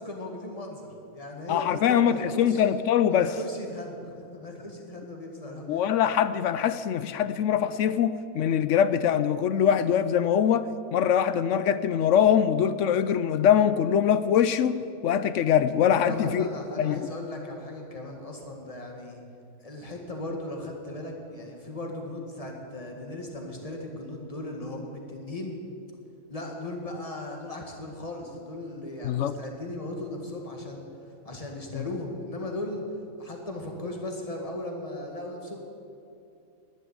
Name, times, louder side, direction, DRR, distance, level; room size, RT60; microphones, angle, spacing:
voice 1, 0.0-2.6 3.1-5.9 16.0-19.2 19.6-25.6 26.3-30.8 31.3-32.8 33.2-35.6, left 1 dB, 25° left, 1 dB, 2.0 m, -37 dB
voice 2, 1.5-3.3 5.7-16.5 16.8-17.1 29.0-29.4 31.7-31.9, left 9 dB, 65° left, 14 dB, 0.8 m, -23 dB
11.5 x 10.0 x 9.6 m, 2.7 s
omnidirectional pair, 1.6 m